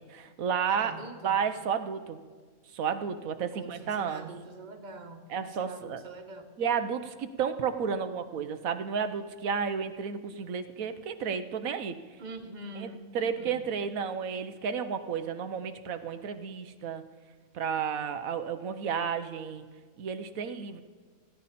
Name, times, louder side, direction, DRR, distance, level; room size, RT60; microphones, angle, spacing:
voice 1, 0.0-0.9 1.2-2.2 2.7-4.3 5.3-6.0 6.6-12.0 12.8-12.9 13.1-17.0 17.5-19.7 20.0-20.8, right 7 dB, 90° right, 9 dB, 1.3 m, -32 dB
voice 2, 0.7-1.5 3.5-6.6 12.2-13.7, right 2 dB, 35° right, 6 dB, 1.3 m, -44 dB
28.0 x 10.0 x 4.2 m, 1.5 s
omnidirectional pair, 1.4 m